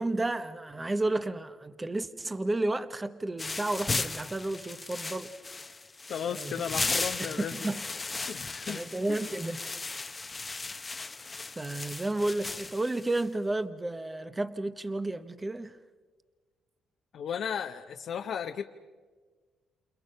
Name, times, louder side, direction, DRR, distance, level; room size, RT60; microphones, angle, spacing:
voice 1, 0.0-5.3 6.3-6.5 6.9-7.8 8.7-9.6 11.6-15.8, right 2 dB, 20° right, 1.0 m, -32 dB
sound 1, 3.4-13.3, left 3 dB, 25° left, 0.9 m, -36 dB
voice 2, 6.1-7.7 8.3-8.8 9.1-9.2 17.1-18.6, left 8 dB, 65° left, 1.0 m, -35 dB
29.0 x 28.5 x 5.6 m
cardioid pair, 90°, 0 cm